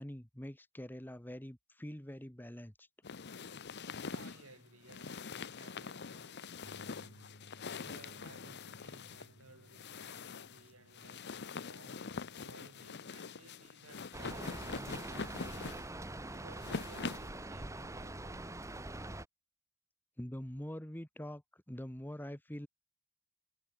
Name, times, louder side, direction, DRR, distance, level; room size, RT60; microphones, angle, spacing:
voice 1, 0.0-2.9 20.2-21.4 21.7-22.7, equal, 10° left, 1.4 m, -44 dB
sound 1, 3.0-17.4, left 5 dB, 50° left, 0.8 m, -44 dB
voice 2, 4.0-7.3 7.8-15.9 16.3-18.5, right 3 dB, 80° right, 4.6 m, -59 dB
Bass guitar, 6.6-12.9, equal, 65° left, 6.8 m, -62 dB
Rain, 14.1-19.2, right 2 dB, 15° right, 1.2 m, -44 dB
head